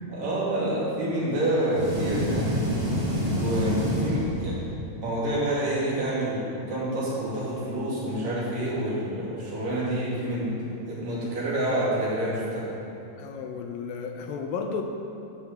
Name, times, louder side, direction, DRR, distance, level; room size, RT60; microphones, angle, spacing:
voice 1, 0.0-2.6 3.3-4.6 5.0-12.7, right 1 dB, 65° right, -8 dB, 4.2 m, -28 dB
sound 1, 1.7-4.9, equal, 20° right, 1.3 m, -27 dB
voice 2, 13.2-14.8, left 5 dB, 80° left, 4 dB, 2.3 m, -33 dB
13.0 x 5.1 x 6.6 m, 2.9 s
omnidirectional pair, 4.3 m